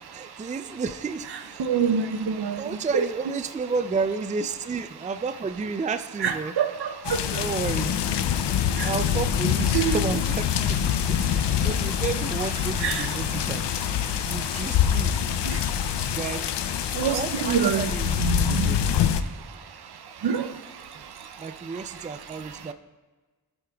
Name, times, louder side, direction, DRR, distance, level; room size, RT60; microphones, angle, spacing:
voice 1, 0.1-1.7 2.6-6.5 7.3-7.9 8.8-13.6 14.2-15.1 16.0-16.5 17.0-18.8 20.9-21.1 21.4-22.7, right 4 dB, 20° right, 0.4 m, -31 dB
voice 2, 1.6-2.6 2.9-3.0 6.2-7.2 9.7-10.0 12.8-13.1 17.0-17.9 18.2-18.7 20.2-20.5, right 7 dB, 65° right, 0.7 m, -25 dB
sound 1, 7.0-19.2, left 9 dB, 80° left, 0.6 m, -25 dB
12.0 x 7.8 x 2.3 m
cardioid pair, 60°, 41 cm